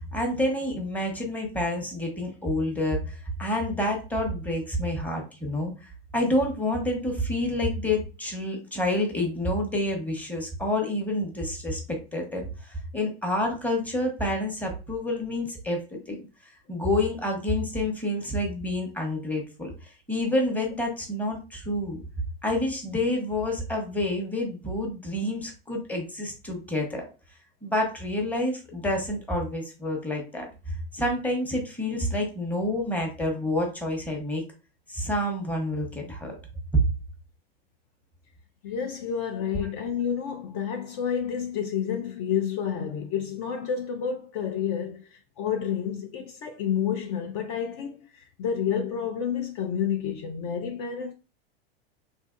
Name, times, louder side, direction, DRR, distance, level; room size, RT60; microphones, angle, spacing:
voice 1, 0.1-16.2 16.7-19.7 20.1-22.0 22.4-27.0 27.6-34.4 34.9-36.3 36.7-36.8, left 1 dB, 5° left, 0.9 m, -28 dB
voice 2, 38.6-51.1, left 8 dB, 45° left, 0.5 m, -30 dB
3.3 x 2.7 x 2.4 m
hypercardioid pair, 110°, 31 cm